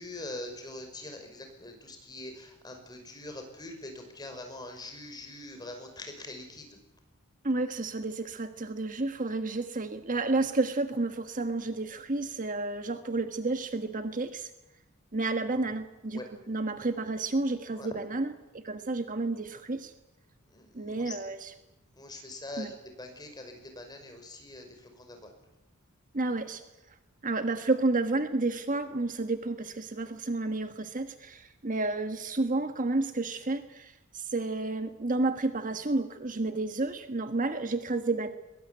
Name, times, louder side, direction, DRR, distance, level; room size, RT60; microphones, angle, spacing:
voice 1, 0.0-6.7 10.4-10.5 16.1-16.3 17.8-17.9 20.5-21.1 22.0-25.3, left 2 dB, 20° left, 5 dB, 5.7 m, -43 dB
voice 2, 7.4-14.5 15.1-19.9 20.7-21.5 22.6-22.7 26.1-26.6 27.2-38.3, right 2 dB, 40° right, 8 dB, 1.4 m, -31 dB
22.5 x 22.0 x 9.5 m, 0.93 s
head